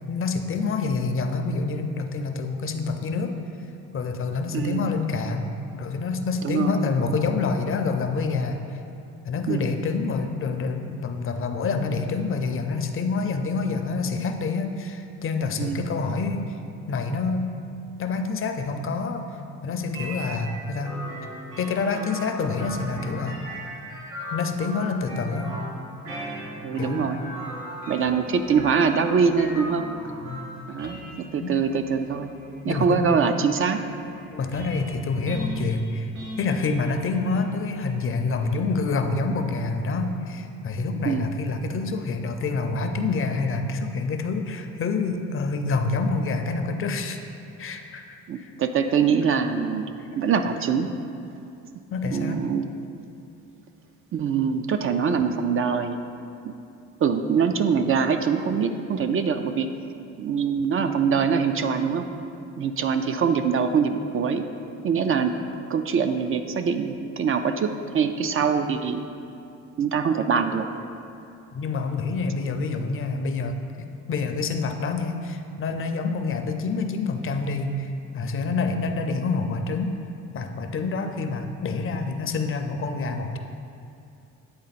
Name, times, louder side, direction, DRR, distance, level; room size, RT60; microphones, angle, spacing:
voice 1, 0.1-3.3 3.9-5.5 5.7-8.8 9.2-16.5 16.9-17.4 18.0-19.3 19.6-20.9 21.6-23.4 24.3-25.5 26.8-27.1 30.2-30.4 31.4-31.5 32.7-33.2 34.3-36.1 36.4-47.2 47.6-48.5 51.9-52.4 71.5-79.9 80.3-83.4, left 4 dB, 45° left, 6 dB, 0.5 m, -27 dB
voice 2, 4.5-4.9 6.4-6.9 9.5-9.7 15.6-15.8 26.6-27.2 27.9-29.9 30.7-32.3 32.6-33.8 41.0-41.3 48.3-49.9 50.2-50.9 52.1-52.6 54.1-56.0 56.4-56.5 57.0-59.7 60.2-62.1 62.6-64.5 64.8-65.3 65.7-69.1 69.8-70.7, right 6 dB, 45° right, 7 dB, 0.4 m, -23 dB
sound 1, 19.9-38.6, right 1 dB, 90° right, 1.3 m, -39 dB
8.6 x 3.8 x 4.1 m, 2.6 s
cardioid pair, 90°, 30 cm